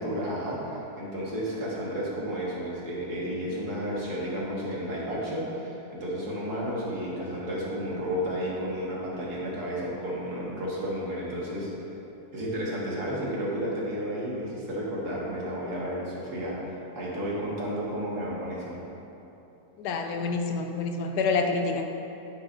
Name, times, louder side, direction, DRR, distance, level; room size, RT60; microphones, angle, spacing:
voice 1, 0.0-11.9 12.3-18.8, equal, 75° right, -6 dB, 2.3 m, -32 dB
voice 2, 19.8-21.9, left 4 dB, 80° left, 5 dB, 1.3 m, -27 dB
10.0 x 9.5 x 2.7 m, 3.0 s
omnidirectional pair, 1.7 m